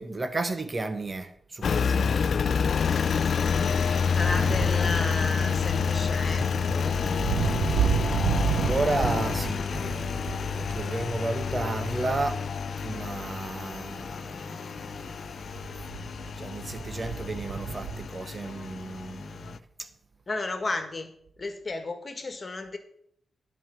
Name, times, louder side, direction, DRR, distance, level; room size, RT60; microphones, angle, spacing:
voice 1, 0.0-2.1 7.5-7.8 8.4-12.5 12.8-15.7 16.4-19.9, right 3 dB, 40° right, 1.1 m, -33 dB
Engine, 1.6-19.6, left 6 dB, 65° left, 0.4 m, -28 dB
voice 2, 4.1-7.0 20.3-21.1 21.4-22.8, left 3 dB, 45° left, 1.8 m, -33 dB
sound 1, 4.2-14.0 14.9-18.1, right 7 dB, 85° right, 0.9 m, -32 dB
9.4 x 5.6 x 7.2 m
supercardioid pair, 50°, 0 cm